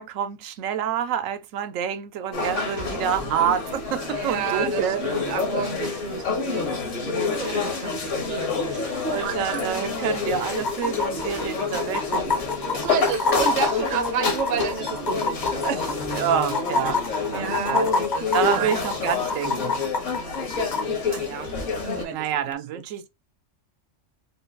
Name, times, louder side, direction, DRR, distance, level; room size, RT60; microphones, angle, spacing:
voice 1, 0.0-5.1 7.3-8.0 9.0-12.4 16.1-17.9 18.3-19.7 22.1-23.1, right 9 dB, 85° right, 1.0 m, -28 dB
sound 1, 2.3-22.0, left 4 dB, 70° left, 1.6 m, -28 dB
voice 2, 2.4-3.1 4.1-9.9 12.8-16.0 17.3-18.8 20.0-21.5 21.8-22.6, right 6 dB, 50° right, 0.6 m, -32 dB
sound 2, 9.5-9.6 9.8-9.9 10.5-20.8 22.5-22.6, left 3 dB, 45° left, 0.7 m, -27 dB
5.3 x 2.3 x 2.6 m
omnidirectional pair, 1.3 m